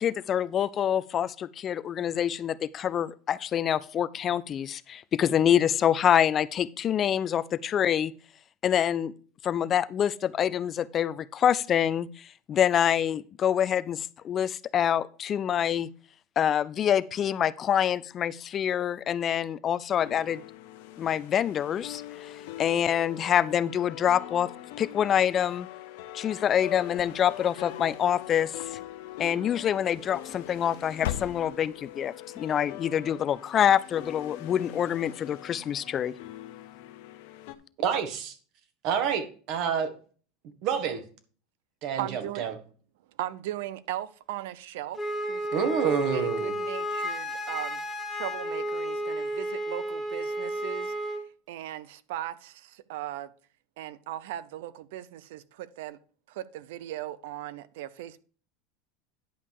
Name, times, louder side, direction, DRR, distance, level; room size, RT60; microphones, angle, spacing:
voice 1, 0.0-8.1 8.6-9.1 9.4-15.9 16.4-20.4 21.0-24.5 24.8-25.7 26.1-28.8 29.2-36.1, left 9 dB, 30° left, 0.4 m, -26 dB
sound 1, 20.0-37.6, left 14 dB, 65° left, 1.0 m, -43 dB
sound 2, 26.8-28.0 28.5-29.2 30.1-30.6 30.9-31.9, left 12 dB, 80° left, 0.6 m, -38 dB
voice 2, 37.8-38.3 38.8-39.9 40.6-41.0 41.8-42.5 45.5-46.5, right 7 dB, 45° right, 1.7 m, -28 dB
voice 3, 42.0-42.4 43.2-47.8 48.1-51.2 51.5-53.3 53.8-56.0 56.3-58.2, right 13 dB, 75° right, 0.7 m, -38 dB
Wind instrument woodwind instrument, 44.9-51.2, equal, 5° left, 1.3 m, -32 dB
10.0 x 5.5 x 4.8 m
supercardioid pair, 150°, 0 cm